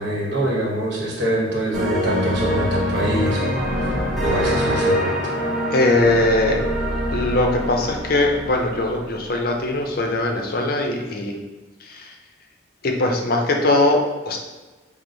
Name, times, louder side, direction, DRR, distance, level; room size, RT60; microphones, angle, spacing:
voice 1, 0.0-3.9 4.2-5.3, right 1 dB, 65° right, -4 dB, 1.1 m, -25 dB
sound 1, 1.7-9.4, equal, ahead, 0.8 m, -24 dB
voice 2, 5.7-6.6 7.1-11.4 11.8-12.2 12.8-14.4, left 2 dB, 50° left, 2 dB, 0.5 m, -21 dB
4.6 x 2.0 x 3.8 m, 1.2 s
head